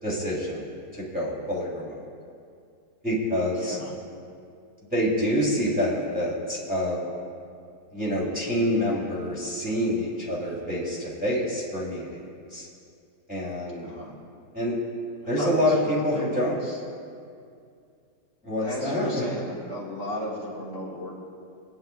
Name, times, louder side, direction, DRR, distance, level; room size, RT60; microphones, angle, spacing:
voice 1, 0.0-0.6 0.9-2.0 3.0-3.8 4.9-7.1 7.9-12.2 12.5-12.7 13.3-13.9 14.5-14.8 15.3-16.6 18.4-19.3, equal, 5° right, -7 dB, 3.2 m, -27 dB
voice 2, 3.5-3.9 13.8-14.1 15.4-16.8 18.4-21.1, left 1 dB, 50° left, -7 dB, 2.2 m, -35 dB
29.0 x 9.8 x 2.4 m, 2.4 s
omnidirectional pair, 1.8 m